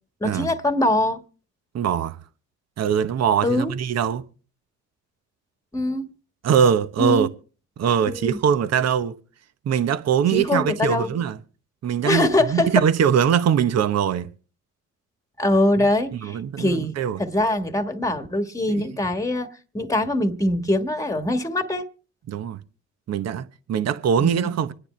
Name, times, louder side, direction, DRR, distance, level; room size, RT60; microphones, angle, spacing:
voice 1, 0.2-1.2 3.4-3.7 5.7-6.1 7.0-7.3 8.1-8.4 10.3-11.1 12.0-12.8 15.4-16.9 17.2-19.5 19.7-21.9 24.2-24.5, left 1 dB, 10° left, 1.4 m, -23 dB
voice 2, 1.7-2.2 2.8-4.2 6.4-7.3 7.8-9.2 9.6-11.4 11.8-14.3 15.8-15.9 16.2-17.2 18.7-18.8 22.3-22.6 23.1-24.7, right 8 dB, 60° right, 0.9 m, -22 dB
26.0 x 9.8 x 3.2 m
cardioid pair, 90°, 30 cm